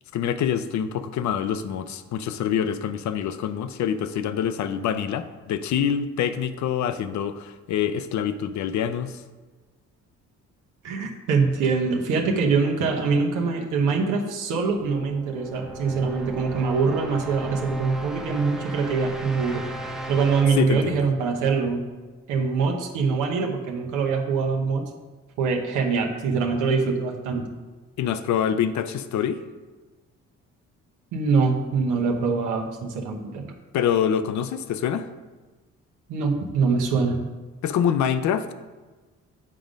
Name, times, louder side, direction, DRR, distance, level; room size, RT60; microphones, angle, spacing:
voice 1, 0.1-9.2 20.6-21.1 28.0-29.4 33.7-35.1 37.6-38.5, left 8 dB, 70° left, 11 dB, 0.6 m, -25 dB
voice 2, 10.8-19.6 20.1-21.8 22.3-24.8 25.4-27.5 31.1-33.5 36.1-37.3, right 4 dB, 90° right, 0 dB, 1.0 m, -24 dB
sound 1, 14.6-22.4, right 1 dB, ahead, 0.6 m, -36 dB
7.6 x 3.8 x 5.1 m, 1.3 s
cardioid pair, 90°, 30 cm